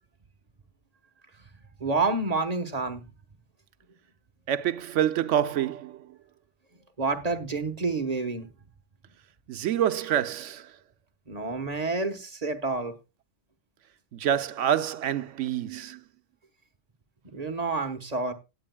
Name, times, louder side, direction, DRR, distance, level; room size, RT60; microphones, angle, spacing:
voice 1, 1.8-3.0 7.0-8.5 11.3-13.0 17.3-18.3, right 3 dB, 35° right, 1.2 m, -28 dB
voice 2, 4.5-6.1 9.5-10.7 14.1-16.0, right 10 dB, 85° right, 1.0 m, -27 dB
17.5 x 9.0 x 2.2 m
omnidirectional pair, 1.2 m